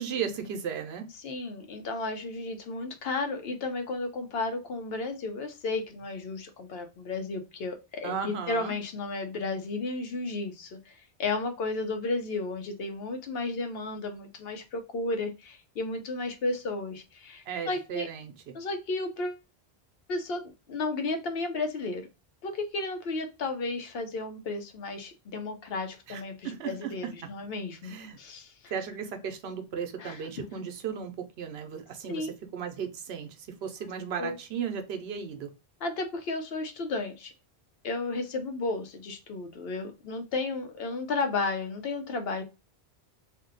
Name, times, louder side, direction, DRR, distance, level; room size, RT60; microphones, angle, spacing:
voice 1, 0.0-1.1 8.0-8.7 17.5-18.5 26.1-26.9 27.8-28.2 28.7-35.5, right 7 dB, 80° right, 6 dB, 0.9 m, -35 dB
voice 2, 1.2-18.1 18.5-19.4 20.1-22.1 22.4-28.5 30.0-30.2 32.1-32.3 34.2-34.3 35.8-37.3 37.8-42.4, left 3 dB, 70° left, 6 dB, 0.8 m, -33 dB
2.6 x 2.1 x 3.8 m, 0.28 s
omnidirectional pair, 1.1 m